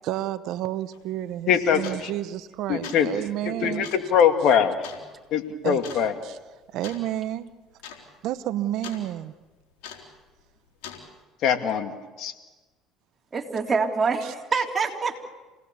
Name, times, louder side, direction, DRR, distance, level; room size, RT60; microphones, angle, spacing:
voice 1, 0.0-3.9 5.6-5.8 6.2-6.4 6.7-7.5 8.2-9.3 14.2-14.3, right 13 dB, 70° right, 13 dB, 0.9 m, -30 dB
sound 1, 0.9-1.0 1.8-2.2 2.6-3.1 3.8-4.1 4.8-5.0 5.8-6.1 6.8-7.1 7.4-7.5 7.8-8.0 8.3-9.0 9.8-10.2 10.8-11.1, left 8 dB, 80° left, 3.7 m, -41 dB
voice 2, 1.5-2.1 2.7-3.1 3.5-4.8 5.3-6.1 11.4-11.9 12.2-12.3, left 8 dB, 65° left, 6 dB, 2.2 m, -22 dB
voice 3, 13.3-15.2, right 4 dB, 30° right, 1 dB, 3.5 m, -25 dB
27.5 x 18.5 x 7.0 m, 1.2 s
supercardioid pair, 85°, 0 cm